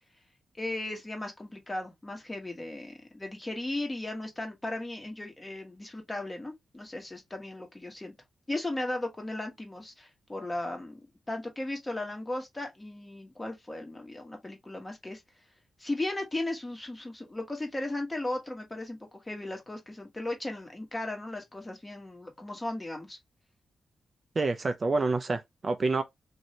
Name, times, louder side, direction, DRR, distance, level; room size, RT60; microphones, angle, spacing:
voice 1, 0.6-8.1 8.5-11.0 11.3-15.2 15.8-19.0 19.2-23.2, left 2 dB, 20° left, 1.2 m, -36 dB
voice 2, 24.4-26.0, right 3 dB, 40° right, 0.4 m, -28 dB
3.1 x 2.6 x 2.8 m
cardioid pair, 95°, 0 cm